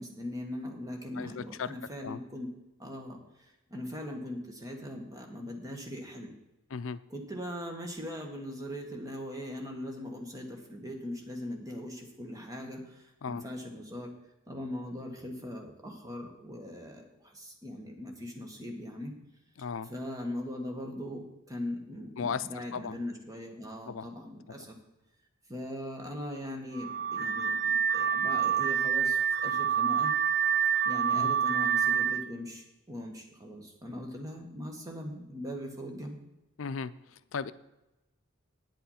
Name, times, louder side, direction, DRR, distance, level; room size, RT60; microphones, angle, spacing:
voice 1, 0.0-2.5 2.8-6.3 7.1-14.1 14.5-19.2 19.9-24.8 25.5-30.2 30.8-36.2, left 1 dB, 15° right, 2 dB, 1.6 m, -40 dB
voice 2, 1.1-1.7 2.0-2.2 6.7-7.0 13.2-13.4 19.6-19.9 22.2-23.0 23.8-24.1 24.6-24.7 31.1-31.3 36.6-37.5, left 6 dB, 70° left, 14 dB, 0.5 m, -36 dB
Car / Alarm, 26.8-32.2, right 8 dB, 50° right, 0.4 m, -27 dB
9.3 x 8.0 x 5.7 m, 0.95 s
head